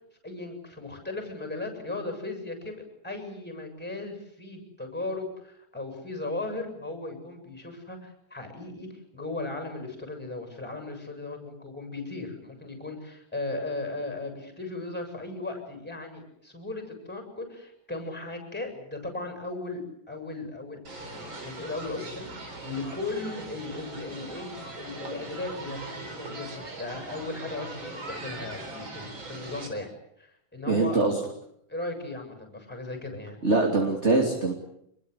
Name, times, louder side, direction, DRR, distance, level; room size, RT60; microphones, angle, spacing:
voice 1, 0.2-19.8 20.1-24.5 24.8-29.9 30.2-31.0 31.7-33.4, left 2 dB, 5° left, 5 dB, 7.4 m, -37 dB
sound 1, 20.9-29.7, right 2 dB, 40° right, 4.7 m, -40 dB
voice 2, 30.7-31.2 33.4-34.5, right 3 dB, 20° right, 2 dB, 2.9 m, -23 dB
26.5 x 22.5 x 8.3 m, 0.73 s
omnidirectional pair, 3.5 m